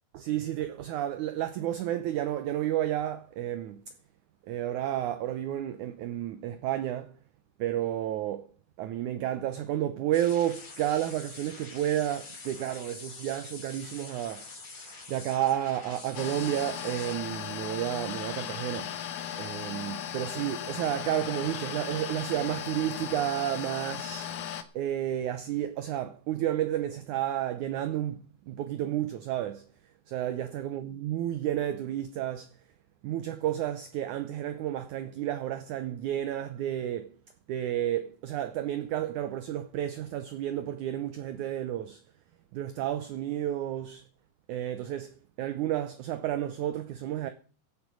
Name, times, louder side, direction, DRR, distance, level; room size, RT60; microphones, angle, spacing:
voice 1, 0.1-3.8 4.4-7.2 7.6-8.5 8.8-14.5 15.1-19.0 19.4-24.3 24.7-29.7 30.1-32.5 33.0-37.2 37.5-42.0 42.5-44.0 44.5-47.3, right 12 dB, 75° right, 1.9 m, -31 dB
sound 1, 10.1-17.2, left 3 dB, 40° left, 4.2 m, -46 dB
sound 2, 16.1-24.6, left 10 dB, 65° left, 2.1 m, -37 dB
16.0 x 8.8 x 6.3 m
omnidirectional pair, 4.4 m